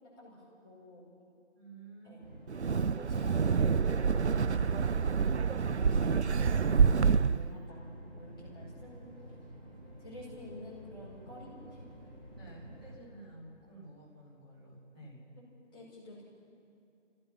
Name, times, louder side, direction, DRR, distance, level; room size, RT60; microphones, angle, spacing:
voice 1, 0.2-1.1 2.0-9.2 10.0-11.9 15.7-16.2, left 1 dB, 20° left, -9 dB, 5.1 m, -49 dB
voice 2, 1.5-2.2 12.3-15.2, right 2 dB, 5° right, -12 dB, 2.1 m, -52 dB
sound 1, 2.2-13.0, right 1 dB, 35° right, 5.3 m, -50 dB
Wind, 2.5-7.5, right 6 dB, 65° right, 0.5 m, -27 dB
28.5 x 15.0 x 6.1 m, 2.6 s
figure-of-eight pair, 175°, 37 cm